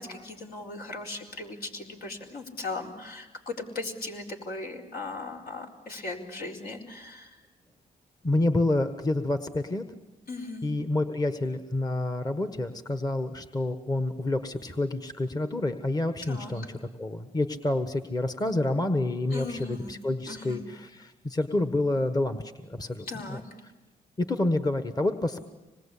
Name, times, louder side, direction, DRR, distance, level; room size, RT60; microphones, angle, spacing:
voice 1, 0.0-7.4 10.3-10.7 16.2-16.7 19.3-19.9 20.3-20.6 23.1-23.4, left 3 dB, 70° left, 0 dB, 4.4 m, -38 dB
voice 2, 8.2-9.8 10.6-23.4 24.2-25.5, left 2 dB, 25° left, 9 dB, 1.4 m, -28 dB
26.0 x 20.5 x 8.5 m, 1.1 s
cardioid pair, 75°, 16 cm